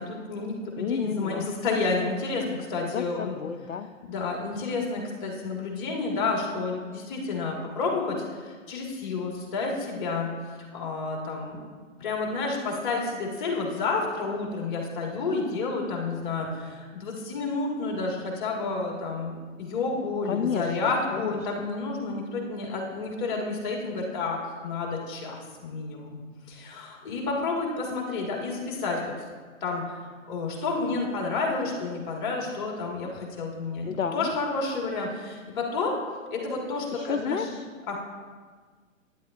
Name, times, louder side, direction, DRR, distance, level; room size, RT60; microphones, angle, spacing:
voice 1, 0.0-3.4 4.1-10.3 10.7-11.6 12.0-26.2 26.5-29.1 29.6-36.0 36.3-37.5 37.9-38.0, left 3 dB, 35° left, 0 dB, 1.9 m, -30 dB
voice 2, 0.8-1.5 2.9-3.9 20.3-21.7 33.8-34.3 36.9-37.7, left 7 dB, 75° left, 7 dB, 0.6 m, -32 dB
11.5 x 9.8 x 2.6 m, 1.5 s
figure-of-eight pair, 120°, 40 cm